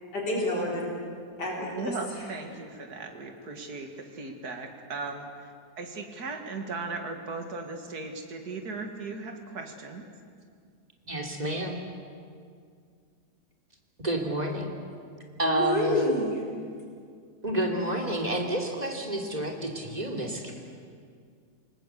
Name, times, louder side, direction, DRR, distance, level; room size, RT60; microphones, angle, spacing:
voice 1, 0.1-0.8 1.4-1.9 15.4-16.4, left 1 dB, 85° left, -3 dB, 4.7 m, -27 dB
voice 2, 1.7-5.5 5.8-10.1, right 3 dB, 70° right, 4 dB, 2.6 m, -37 dB
voice 3, 11.1-11.8 14.0-14.7 15.4-16.0 17.4-20.5, right 1 dB, 25° right, 1 dB, 3.2 m, -30 dB
28.0 x 19.5 x 8.3 m, 2.2 s
omnidirectional pair, 1.8 m